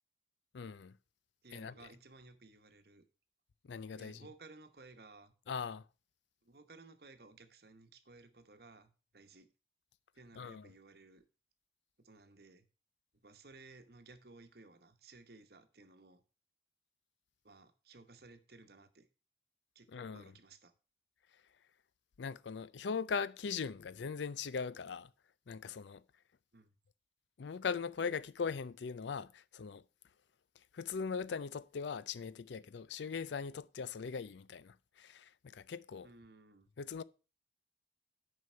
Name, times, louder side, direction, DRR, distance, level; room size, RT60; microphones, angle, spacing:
voice 1, 0.5-1.0 1.5-1.9 3.6-4.3 5.5-5.9 10.4-10.7 19.9-20.3 22.2-25.1 25.5-26.0 27.4-29.8 30.7-36.1 36.8-37.0, left 5 dB, 80° left, 0.4 m, -40 dB
voice 2, 1.4-3.1 3.9-5.3 6.4-9.5 10.1-11.2 12.0-12.7 13.2-16.2 17.4-19.1 19.7-20.7 26.5-26.7 36.0-36.7, right 3 dB, 60° right, 1.1 m, -58 dB
9.5 x 5.4 x 5.5 m
head